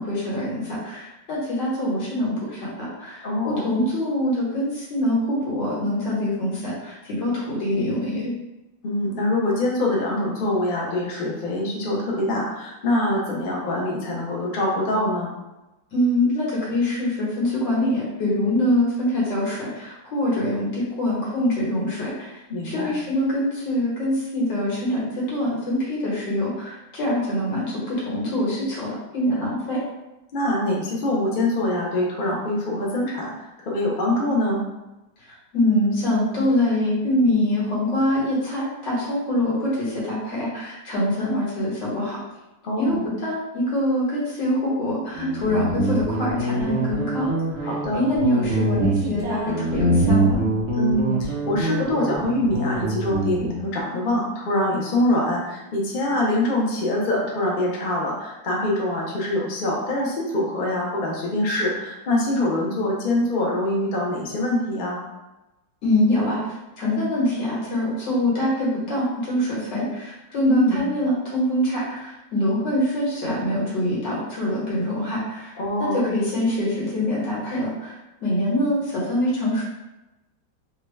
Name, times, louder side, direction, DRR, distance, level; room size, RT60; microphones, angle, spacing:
voice 1, 0.0-8.3 15.9-29.8 35.2-42.2 42.8-47.3 47.6-50.4 65.8-66.4 66.8-75.5 75.8-79.6, left 1 dB, 70° left, -6 dB, 1.9 m, -24 dB
voice 2, 3.2-3.7 8.8-15.4 22.5-22.9 30.3-34.6 42.6-43.1 47.6-48.0 50.7-65.0 70.5-70.8 75.6-76.0, left 1 dB, 90° left, -3 dB, 0.4 m, -24 dB
Guitar, 45.2-53.6, right 1 dB, 60° right, 0.7 m, -24 dB
3.7 x 2.3 x 3.2 m, 1.0 s
omnidirectional pair, 2.1 m